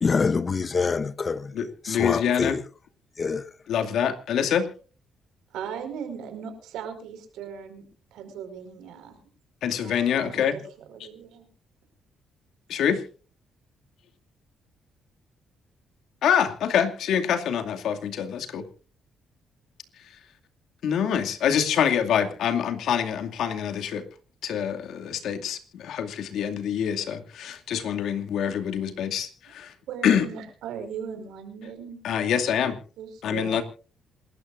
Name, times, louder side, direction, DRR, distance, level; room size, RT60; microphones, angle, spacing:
voice 1, 0.0-1.5 1.8-2.6 3.2-3.5, left 5 dB, 35° left, 0.8 m, -25 dB
voice 2, 1.5-2.6 3.7-4.7 9.6-10.6 12.7-13.0 16.2-18.6 20.8-24.0 24.4-29.7 30.0-30.3 32.0-32.8 33.2-33.6, left 8 dB, 75° left, 2.4 m, -25 dB
voice 3, 5.5-7.8 8.1-9.2 9.8-10.6 10.9-11.5 29.9-32.0 33.0-33.6, right 7 dB, 85° right, 5.1 m, -38 dB
27.5 x 13.5 x 2.6 m
cardioid pair, 90°, 0 cm